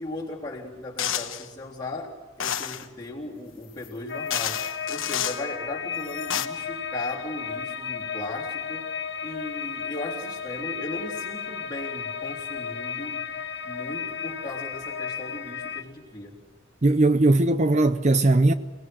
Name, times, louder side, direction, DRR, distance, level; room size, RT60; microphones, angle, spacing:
voice 1, 0.0-8.9 9.2-13.3 13.6-16.4, left 2 dB, 20° left, 3.6 m, -37 dB
sound 1, 1.0-1.5 2.4-2.9 3.8-3.9 4.3-5.4 6.1-6.5, left 9 dB, 80° left, 1.2 m, -29 dB
sound 2, 4.1-15.8, left 7 dB, 60° left, 1.1 m, -33 dB
voice 2, 16.8-18.5, right 2 dB, 35° right, 0.6 m, -19 dB
29.0 x 19.0 x 6.3 m
head